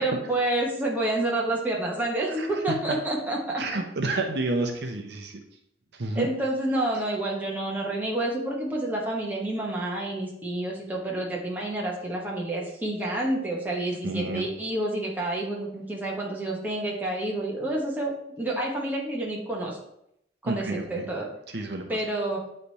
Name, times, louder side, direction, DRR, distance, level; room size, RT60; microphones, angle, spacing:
voice 1, 0.0-3.6 6.2-19.8 20.4-21.3 21.9-22.4, right 1 dB, 10° right, -3 dB, 1.2 m, -29 dB
voice 2, 2.3-3.0 3.6-5.4 5.9-6.3 6.9-7.0 14.0-14.5 20.5-21.1 21.5-22.0, right 2 dB, 65° right, 4 dB, 0.7 m, -30 dB
8.3 x 3.3 x 4.1 m, 0.76 s
head